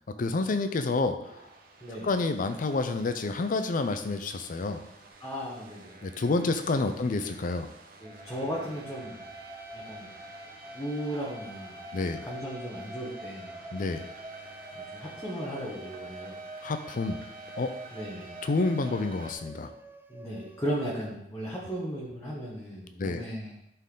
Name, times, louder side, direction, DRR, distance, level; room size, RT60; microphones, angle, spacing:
voice 1, 0.1-1.4 2.0-4.8 6.0-7.7 11.9-12.2 13.7-14.1 16.6-17.2 17.6-17.7 18.4-19.7 23.0-23.2, left 3 dB, 50° left, 8 dB, 0.5 m, -29 dB
sound 1, 1.2-19.3, right 3 dB, 55° right, 1.1 m, -50 dB
voice 2, 5.2-6.0 6.9-7.1 8.0-9.2 9.7-10.1 10.7-11.8 12.2-13.5 14.7-16.4 17.9-18.3 20.1-23.5, equal, 15° left, -5 dB, 1.3 m, -36 dB
sound 2, 8.0-21.1, right 1 dB, 10° right, 0.4 m, -46 dB
11.5 x 4.4 x 3.8 m, 0.80 s
head